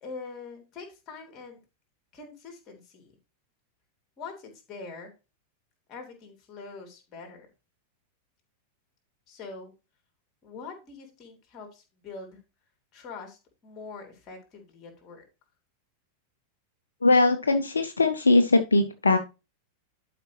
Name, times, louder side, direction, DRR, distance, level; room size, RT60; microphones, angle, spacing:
voice 1, 0.0-1.6 2.1-3.1 4.2-5.1 5.9-7.5 9.3-9.7 10.4-12.4 12.9-15.2, left 4 dB, 30° left, 3 dB, 3.3 m, -43 dB
voice 2, 17.0-19.2, left 2 dB, 75° left, 8 dB, 0.7 m, -21 dB
11.5 x 5.1 x 3.1 m, 0.29 s
figure-of-eight pair, 90°, 0 cm